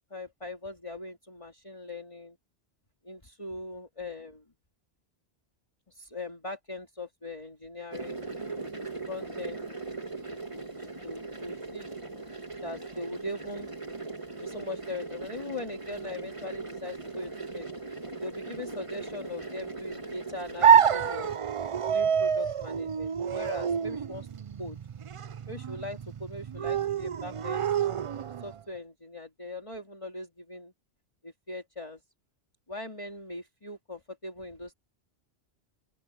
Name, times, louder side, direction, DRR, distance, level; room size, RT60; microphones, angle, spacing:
voice 1, 0.1-2.4 3.0-4.4 5.9-8.2 9.1-9.9 10.3-10.7 11.0-11.9 12.6-13.7 14.4-17.7 18.2-21.3 21.9-24.3 24.6-24.8 25.5-27.7 28.4-30.7 31.2-32.0 32.7-34.7, left 2 dB, 30° left, 2.7 m, -40 dB
sound 1, 7.9-21.4, right 3 dB, 30° right, 3.0 m, -40 dB
sound 2, 20.6-28.6, right 7 dB, 55° right, 0.3 m, -27 dB
open air
omnidirectional pair, 1.1 m